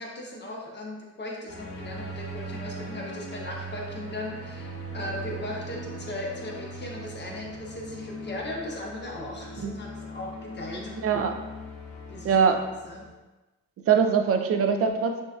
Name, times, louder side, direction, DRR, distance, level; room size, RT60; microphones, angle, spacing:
voice 1, 0.0-11.2 12.1-12.4 12.8-13.1, left 1 dB, 35° left, -2 dB, 1.1 m, -37 dB
sound 1, 1.5-13.1, right 1 dB, 65° left, 1.2 m, -40 dB
voice 2, 11.0-11.3 12.2-12.6 13.9-15.2, right 6 dB, 50° right, 5 dB, 0.5 m, -22 dB
6.3 x 2.8 x 2.3 m, 1.1 s
cardioid pair, 90°, 30 cm